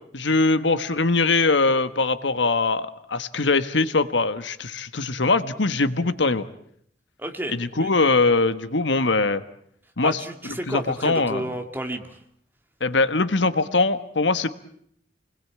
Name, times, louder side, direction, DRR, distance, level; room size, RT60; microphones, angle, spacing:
voice 1, 0.1-6.5 7.5-9.4 10.0-10.2 10.4-11.4 12.8-14.5, left 3 dB, 85° left, 12 dB, 1.3 m, -22 dB
voice 2, 7.2-7.9 10.0-12.2, right 1 dB, 10° right, 5 dB, 2.2 m, -31 dB
29.0 x 20.5 x 8.6 m, 0.67 s
head